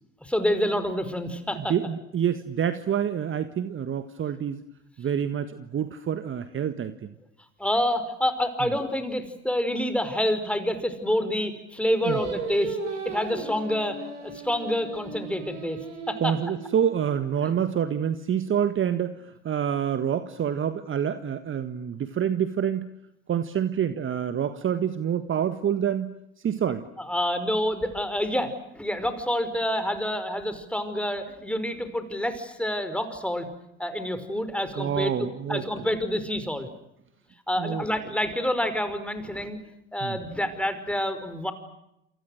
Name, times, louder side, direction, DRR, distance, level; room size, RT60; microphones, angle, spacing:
voice 1, 0.2-1.7 7.6-12.8 13.1-15.8 16.1-16.3 17.4-17.5 27.0-33.5 33.8-35.1 35.5-36.7 37.5-39.6 39.9-41.5, equal, 5° left, 10 dB, 5.2 m, -27 dB
voice 2, 1.5-4.6 5.0-7.1 8.6-8.7 12.0-12.2 16.2-22.9 23.3-26.1 26.4-26.8 34.7-35.6 37.6-37.8 40.0-40.2, right 8 dB, 35° right, 11 dB, 1.7 m, -27 dB
Singing, 12.0-17.3, right 3 dB, 85° right, 4.9 m, -36 dB
28.5 x 28.5 x 6.5 m, 0.82 s
figure-of-eight pair, 65°, 35 cm